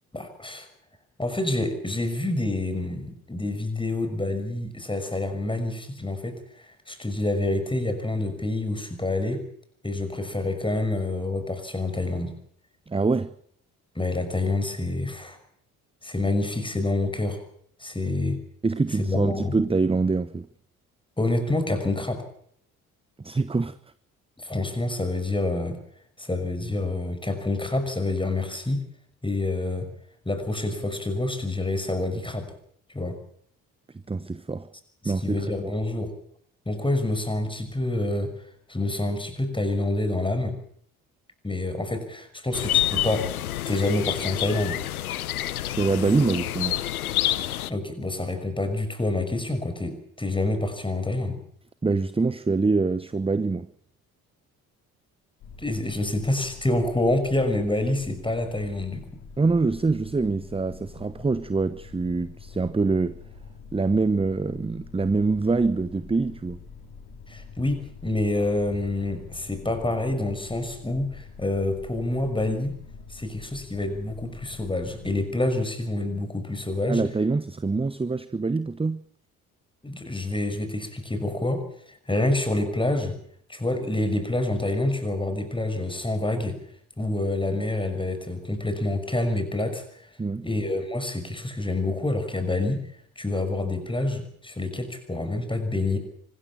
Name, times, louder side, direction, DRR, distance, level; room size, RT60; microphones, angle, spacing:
voice 1, 0.1-0.7 1.2-9.4 9.8-12.3 13.9-15.4 16.0-17.4 17.8-18.4 19.0-19.6 21.2-22.2 24.4-25.8 26.2-28.8 29.2-29.9 30.3-32.5 32.9-33.2 35.0-36.1 36.7-38.3 38.7-40.6 41.4-43.3 43.7-44.8 47.7-51.4 55.6-59.1 67.3-72.8 73.1-77.0 79.8-83.2 83.5-86.6 87.0-89.8 90.4-92.8 93.2-96.0, left 2 dB, 10° left, 6.0 m, -27 dB
voice 2, 12.9-13.3 18.6-20.5 23.2-23.8 34.1-34.7 35.0-35.7 45.6-46.8 51.8-53.7 59.4-63.2 63.7-66.6 76.9-79.0 90.2-90.5, right 3 dB, 15° right, 1.0 m, -25 dB
sound 1, 42.5-47.7, left 13 dB, 80° left, 0.9 m, -28 dB
sound 2, 55.4-75.2, left 5 dB, 60° left, 4.5 m, -45 dB
25.0 x 13.5 x 8.7 m
figure-of-eight pair, 45°, 43 cm